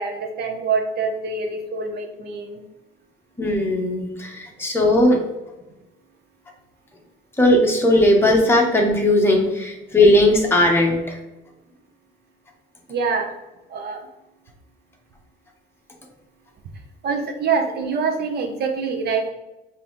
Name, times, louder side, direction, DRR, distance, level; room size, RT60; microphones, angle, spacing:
voice 1, 0.0-2.6 12.9-13.3 13.7-14.1 17.0-19.3, right 5 dB, 50° right, 3 dB, 0.8 m, -25 dB
voice 2, 3.4-5.2 7.4-11.2, left 1 dB, 10° left, 0 dB, 0.9 m, -17 dB
5.3 x 2.7 x 3.0 m, 0.99 s
cardioid pair, 130°, 21 cm